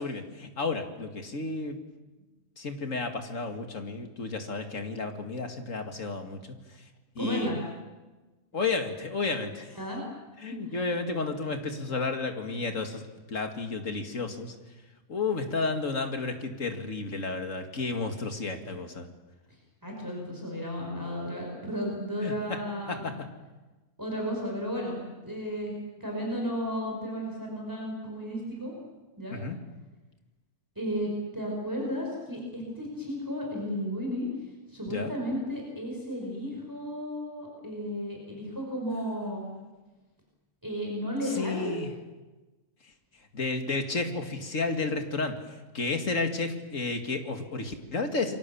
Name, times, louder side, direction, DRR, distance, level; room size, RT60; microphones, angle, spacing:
voice 1, 0.0-1.8 2.6-6.6 7.2-7.5 8.5-9.8 10.4-14.5 15.1-19.1 22.2-22.3 22.9-23.1 29.3-29.6 34.9-35.1 41.2-41.9 43.3-45.4 45.7-48.4, left 3 dB, 60° left, 5 dB, 2.6 m, -32 dB
voice 2, 7.2-7.6 9.7-10.0 10.5-10.8 19.8-23.1 24.0-25.7 26.0-28.7 29.2-29.4 30.8-34.3 34.7-39.5 40.6-41.9, equal, 10° right, -1 dB, 5.6 m, -33 dB
29.0 x 23.5 x 7.2 m, 1.2 s
omnidirectional pair, 1.6 m